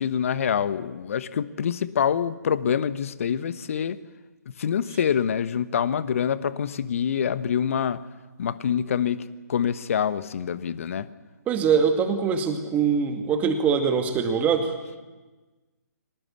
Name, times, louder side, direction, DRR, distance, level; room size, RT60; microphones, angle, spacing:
voice 1, 0.0-4.0 4.5-8.0 8.4-11.1, left 8 dB, 50° left, 15 dB, 1.2 m, -26 dB
voice 2, 11.5-14.7, right 6 dB, 15° right, 6 dB, 2.3 m, -23 dB
23.5 x 19.5 x 8.4 m, 1.2 s
figure-of-eight pair, 135°, 10 cm